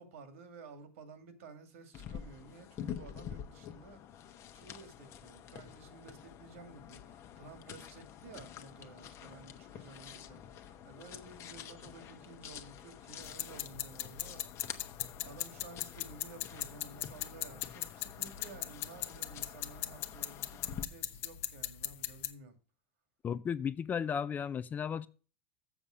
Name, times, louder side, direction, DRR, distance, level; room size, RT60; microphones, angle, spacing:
voice 1, 0.0-4.0 4.5-7.0 7.4-14.5 15.2-22.6, right 4 dB, 80° right, 2.1 m, -53 dB
sound 1, 1.9-20.8, left 9 dB, 40° left, 1.0 m, -48 dB
sound 2, 13.2-22.3, left 13 dB, 75° left, 0.9 m, -40 dB
voice 2, 23.2-25.1, left 7 dB, 25° left, 0.5 m, -34 dB
7.1 x 7.1 x 6.1 m
supercardioid pair, 125°, 7 cm